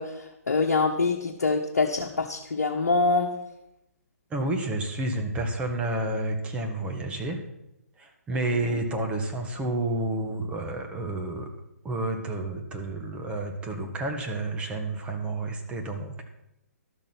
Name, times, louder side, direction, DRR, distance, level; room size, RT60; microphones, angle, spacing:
voice 1, 0.0-3.3 8.6-8.8, left 3 dB, 70° left, 1 dB, 1.3 m, -25 dB
voice 2, 4.3-7.4 8.0-11.5 11.8-16.2, right 2 dB, 15° right, 3 dB, 1.4 m, -30 dB
12.5 x 6.6 x 6.1 m, 0.85 s
figure-of-eight pair, 130°, 8 cm